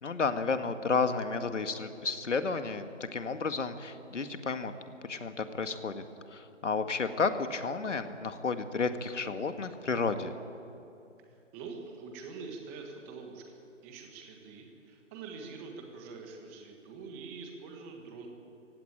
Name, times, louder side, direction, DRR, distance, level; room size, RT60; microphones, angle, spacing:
voice 1, 0.0-4.7 5.0-10.3, left 4 dB, 70° left, 9 dB, 1.9 m, -32 dB
voice 2, 11.5-13.5 13.8-18.3, right 4 dB, 10° right, 3 dB, 1.5 m, -45 dB
25.5 x 16.0 x 8.8 m, 2.6 s
hypercardioid pair, 165°, 37 cm